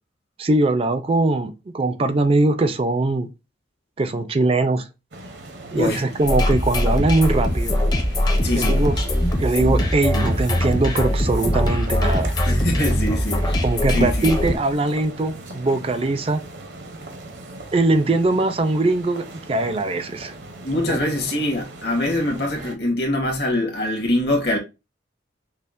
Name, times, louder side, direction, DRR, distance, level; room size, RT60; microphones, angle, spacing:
voice 1, 0.4-3.3 4.0-4.9 5.7-7.8 8.5-9.0 9.4-12.3 13.6-16.4 17.7-20.3 20.9-21.0, right 2 dB, 30° right, 0.4 m, -21 dB
sound 1, 5.1-22.8, right 2 dB, 65° right, 0.7 m, -39 dB
voice 2, 5.7-6.1 8.4-8.8 12.4-13.6 13.9-14.3 20.6-24.6, left 1 dB, 60° left, 1.3 m, -23 dB
sound 2, 6.2-14.6, left 1 dB, 20° left, 0.6 m, -21 dB
5.5 x 2.1 x 2.5 m
head